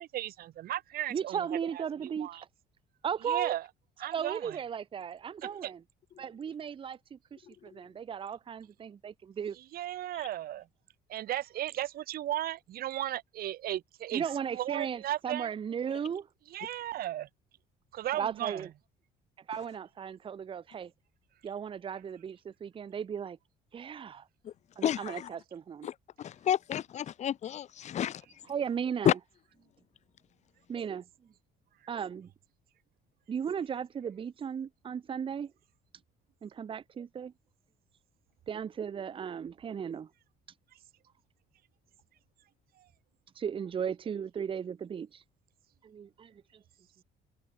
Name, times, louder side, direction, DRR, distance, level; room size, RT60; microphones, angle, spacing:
voice 1, 0.0-2.4 3.2-3.7 4.0-4.6 5.4-5.7 9.5-10.7 11.1-15.5 16.5-17.3 17.9-18.7 40.7-40.8 42.8-42.9, right 13 dB, 60° right, 1.0 m, -36 dB
voice 2, 1.1-2.3 3.0-3.6 4.1-5.8 6.2-9.6 14.1-16.3 18.1-18.7 19.5-20.9 21.4-23.4 23.7-24.3 24.8-25.9 28.5-29.2 30.7-31.0 31.9-32.3 33.3-35.5 36.4-37.3 38.5-40.1 43.4-45.2 45.8-46.6, right 7 dB, 30° right, 0.7 m, -36 dB
voice 3, 24.8-25.3 25.8-28.2 29.0-29.1, left 10 dB, 45° left, 0.7 m, -30 dB
cardioid pair, 110°, 17 cm